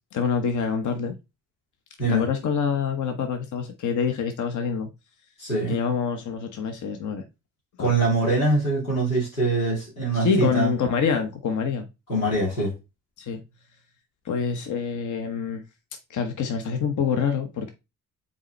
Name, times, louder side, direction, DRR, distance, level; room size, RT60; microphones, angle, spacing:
voice 1, 0.1-1.1 2.1-4.9 5.7-7.2 7.8-7.9 10.1-11.9 13.2-13.4 14.2-15.6 16.1-17.7, left 6 dB, 50° left, 1.1 m, -26 dB
voice 2, 5.4-5.8 7.8-10.7 12.1-12.7, right 2 dB, 90° left, 2.1 m, -23 dB
7.3 x 4.2 x 3.3 m
figure-of-eight pair, 45°, 39 cm